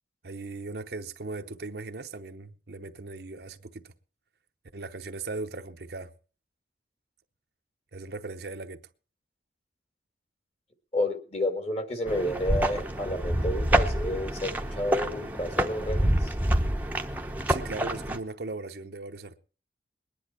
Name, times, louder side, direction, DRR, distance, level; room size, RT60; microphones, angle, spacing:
voice 1, 0.2-3.9 4.7-6.1 7.9-8.8 17.5-19.4, right 3 dB, 60° right, 0.8 m, -38 dB
voice 2, 10.9-16.3, left 1 dB, 35° left, 1.9 m, -30 dB
sound 1, 12.1-18.2, right 1 dB, 10° right, 0.8 m, -27 dB
21.0 x 10.0 x 4.3 m
head